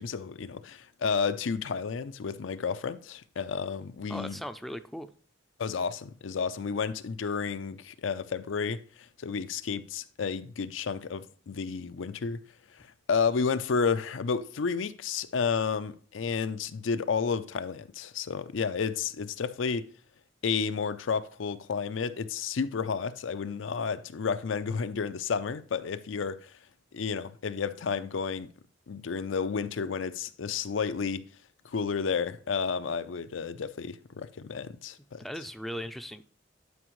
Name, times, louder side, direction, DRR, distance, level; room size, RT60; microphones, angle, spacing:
voice 1, 0.0-4.4 5.6-12.4 12.7-19.9 20.4-26.6 26.9-28.5 28.9-31.2 31.6-35.2, left 5 dB, 90° left, 0.5 m, -31 dB
voice 2, 4.1-5.1 35.2-36.2, equal, ahead, 0.4 m, -38 dB
11.0 x 5.1 x 3.1 m
head